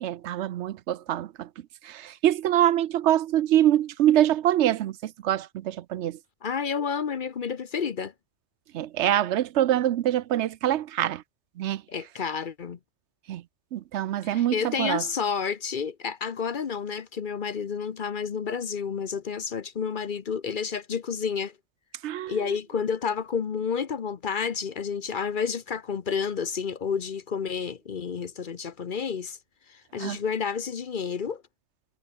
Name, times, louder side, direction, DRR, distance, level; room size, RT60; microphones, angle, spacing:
voice 1, 0.0-1.5 1.8-6.2 8.7-11.2 11.6-11.8 13.3-13.4 13.7-15.0 22.0-22.4 30.0-30.2, right 12 dB, 75° right, 0.9 m, -24 dB
voice 2, 6.4-8.1 11.9-12.8 14.2-21.5 22.3-29.4 29.7-31.4, left 6 dB, 50° left, 0.9 m, -30 dB
omnidirectional pair, 1.2 m